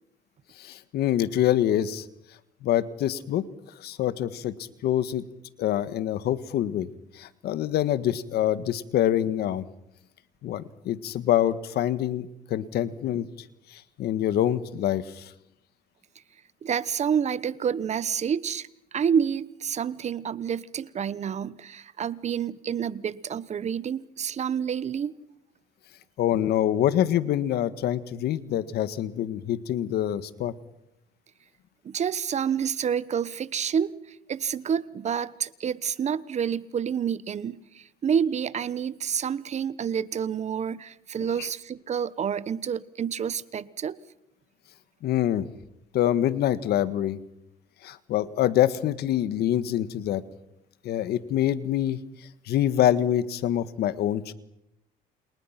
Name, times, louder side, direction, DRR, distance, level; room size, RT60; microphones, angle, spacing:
voice 1, 0.6-2.0 2.6-3.4 3.8-4.5 4.8-5.2 5.6-6.9 7.2-9.7 10.4-13.3 14.0-15.3 26.2-30.5 41.2-41.5 45.0-45.4 45.9-47.2 47.8-50.2 50.8-52.0 52.5-54.3, left 11 dB, 70° left, 1.6 m, -25 dB
voice 2, 16.6-18.7 18.9-25.1 31.8-34.0 34.3-44.0, right 7 dB, 40° right, 1.1 m, -28 dB
30.0 x 28.5 x 5.9 m
cardioid pair, 110°, 17 cm